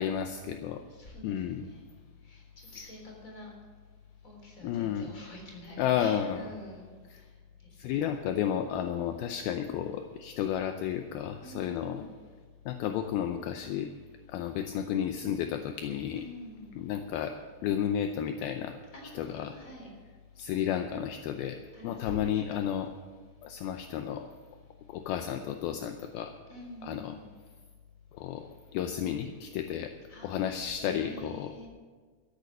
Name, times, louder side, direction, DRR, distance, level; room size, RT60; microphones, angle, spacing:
voice 1, 0.0-0.8 1.2-1.7 4.6-5.1 5.8-6.5 7.8-12.0 12.7-13.9 14.3-16.2 16.8-17.4 17.6-18.8 19.2-19.5 20.4-21.6 21.8-22.9 23.4-24.3 24.9-26.3 26.8-27.1 28.2-28.5 28.7-29.9 30.2-31.5, left 9 dB, 80° left, 7 dB, 2.2 m, -32 dB
voice 2, 0.9-1.9 2.2-3.5 4.2-6.9 7.8-8.2 11.4-12.0 16.2-16.7 18.9-19.9 21.7-22.6 26.5-27.3 30.1-31.7, left 1 dB, 20° left, 0 dB, 3.4 m, -47 dB
13.5 x 10.5 x 6.6 m, 1.5 s
omnidirectional pair, 5.0 m